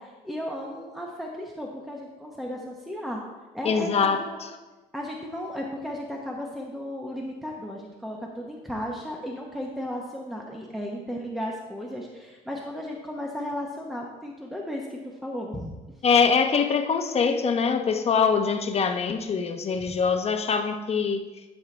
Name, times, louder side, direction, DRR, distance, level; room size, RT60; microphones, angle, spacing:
voice 1, 0.0-3.2 3.5-4.4 4.9-15.7, equal, ahead, -1 dB, 0.9 m, -35 dB
voice 2, 3.6-4.5 16.0-21.2, left 5 dB, 40° left, 6 dB, 0.9 m, -23 dB
13.0 x 5.6 x 3.3 m, 1.2 s
cardioid pair, 110°, 17 cm